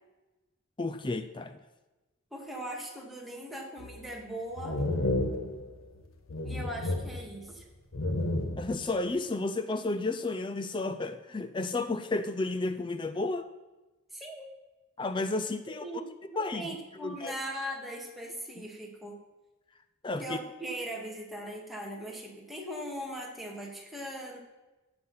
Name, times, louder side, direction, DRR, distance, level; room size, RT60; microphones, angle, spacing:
voice 1, 0.8-1.6 8.6-13.5 15.0-15.8 16.2-17.4 18.6-18.7 20.0-20.4, left 2 dB, 25° left, 10 dB, 0.5 m, -32 dB
voice 2, 2.3-4.8 6.4-7.7 14.1-14.5 15.8-16.1 16.5-19.2 20.2-24.4, right 1 dB, ahead, -2 dB, 2.2 m, -39 dB
sound 1, 3.8-4.2 4.6-6.0 6.3-7.6 7.9-8.9, left 1 dB, 85° left, 1.3 m, -32 dB
15.5 x 7.9 x 5.6 m, 1.1 s
head